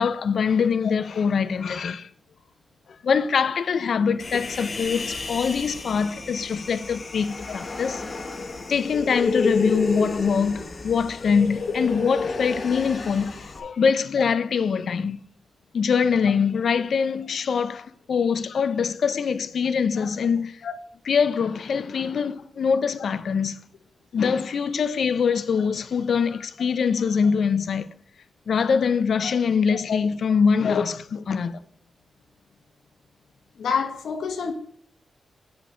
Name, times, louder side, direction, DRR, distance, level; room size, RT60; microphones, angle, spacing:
voice 1, 0.0-2.1 3.0-8.0 8.7-15.2 15.7-20.6 21.1-23.6 24.1-27.9 28.5-31.6, left 6 dB, 60° left, 0.5 m, -23 dB
Human voice, 4.2-13.6, left 3 dB, 35° left, 1.1 m, -31 dB
voice 2, 33.6-34.5, left 6 dB, 90° left, 1.1 m, -28 dB
9.0 x 6.8 x 3.8 m
wide cardioid pair, 175°, 0 cm